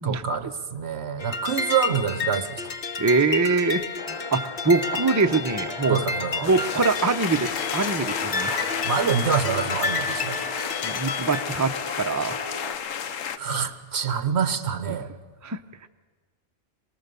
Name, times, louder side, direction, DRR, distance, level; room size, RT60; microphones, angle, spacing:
voice 1, 0.0-2.7 5.9-6.5 8.3-10.4 13.4-15.1, right 6 dB, 60° right, 11 dB, 1.3 m, -26 dB
sound 1, 1.2-11.4, left 4 dB, 50° left, 1.2 m, -31 dB
voice 2, 3.0-6.0 6.4-8.5 10.8-12.4 15.4-15.6, right 3 dB, 20° right, 7 dB, 0.4 m, -24 dB
sound 2, 4.0-12.8, left 2 dB, 25° left, 1.0 m, -37 dB
sound 3, 6.4-13.4, left 8 dB, 85° left, 1.2 m, -32 dB
23.5 x 19.5 x 6.9 m, 1.5 s
omnidirectional pair, 1.3 m